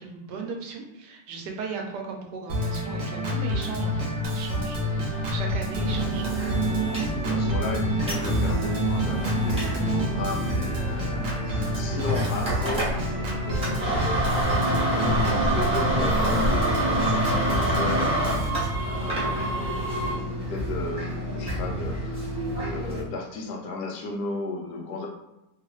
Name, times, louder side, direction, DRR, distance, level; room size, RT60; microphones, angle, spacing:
voice 1, 0.0-6.3, right 4 dB, 85° right, 1 dB, 1.2 m, -37 dB
Organ, 2.5-18.5, equal, 70° right, 1.2 m, -28 dB
sound 1, 4.2-20.2, right 1 dB, 30° right, 1.4 m, -36 dB
sound 2, 5.7-23.0, right 1 dB, 5° right, 0.8 m, -28 dB
voice 2, 7.2-12.9 13.3-22.2 22.6-25.1, left 3 dB, 75° left, 1 dB, 1.1 m, -35 dB
3.0 x 2.4 x 3.0 m, 0.94 s
omnidirectional pair, 1.8 m